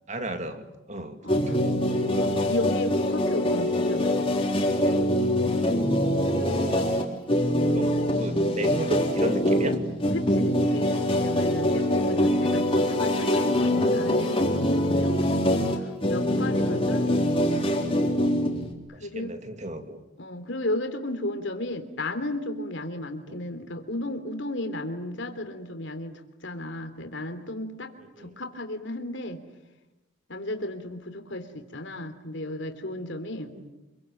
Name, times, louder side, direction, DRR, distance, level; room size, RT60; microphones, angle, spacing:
voice 1, 0.1-1.8 5.7-6.8 7.7-9.8 15.3-15.4 16.0-16.1 16.4-16.9 18.9-20.0 23.3-23.4 28.2-28.3 33.5-33.6, right 1 dB, 35° right, 7 dB, 2.4 m, -34 dB
voice 2, 1.2-1.6 2.1-4.5 10.1-17.5 18.9-19.3 20.2-29.4 30.3-33.5, left 1 dB, 60° left, 7 dB, 3.3 m, -34 dB
sound 1, 1.3-18.7, left 1 dB, 25° left, 4.0 m, -24 dB
28.0 x 23.5 x 9.2 m, 0.97 s
head